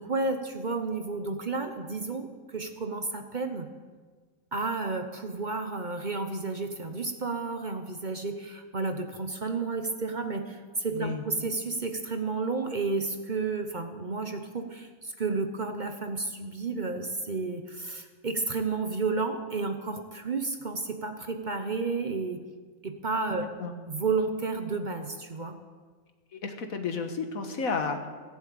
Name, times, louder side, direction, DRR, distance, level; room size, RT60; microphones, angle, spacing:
voice 1, 0.0-3.7 4.5-22.4 22.8-23.5 23.9-25.6, right 3 dB, 40° right, 6 dB, 0.9 m, -31 dB
voice 2, 10.9-11.2 23.3-23.7 26.3-28.1, left 4 dB, 80° left, 6 dB, 1.8 m, -32 dB
17.5 x 7.4 x 8.6 m, 1.5 s
omnidirectional pair, 1.4 m